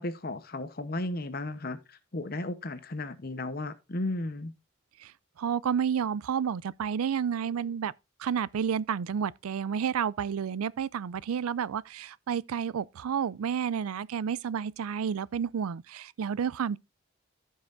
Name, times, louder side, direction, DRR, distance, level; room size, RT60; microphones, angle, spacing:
voice 1, 0.0-4.5, left 2 dB, 45° left, 0.9 m, -34 dB
voice 2, 5.4-7.9 8.2-16.8, right 7 dB, 90° right, 0.4 m, -30 dB
14.5 x 5.6 x 2.5 m
head